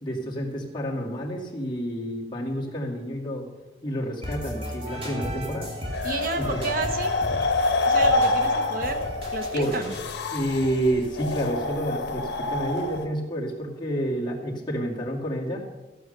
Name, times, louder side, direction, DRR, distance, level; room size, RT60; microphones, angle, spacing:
voice 1, 0.0-3.5 3.8-5.7 6.4-6.6 9.5-9.8 10.3-15.6, equal, 25° left, -3 dB, 2.4 m, -29 dB
sound 1, 4.2-12.1, equal, 35° right, 2.7 m, -36 dB
sound 2, 5.9-13.0, left 2 dB, 75° left, 1.1 m, -26 dB
voice 2, 6.0-7.1 7.9-9.0 9.3-9.9, right 3 dB, 50° right, 6 dB, 1.0 m, -30 dB
15.0 x 7.2 x 6.7 m, 1.2 s
head